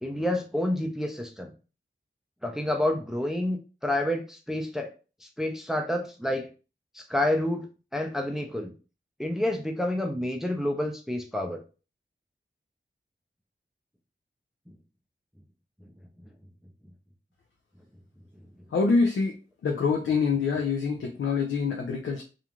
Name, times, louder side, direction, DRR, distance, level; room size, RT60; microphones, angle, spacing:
voice 1, 0.0-1.5 2.4-4.9 5.4-6.5 6.9-7.7 7.9-8.7 9.2-11.6, left 1 dB, ahead, 3 dB, 0.5 m, -29 dB
voice 2, 18.7-19.3 19.6-22.2, left 4 dB, 85° left, 0 dB, 0.5 m, -25 dB
2.5 x 2.3 x 2.9 m, 0.34 s
cardioid pair, 50°, 20 cm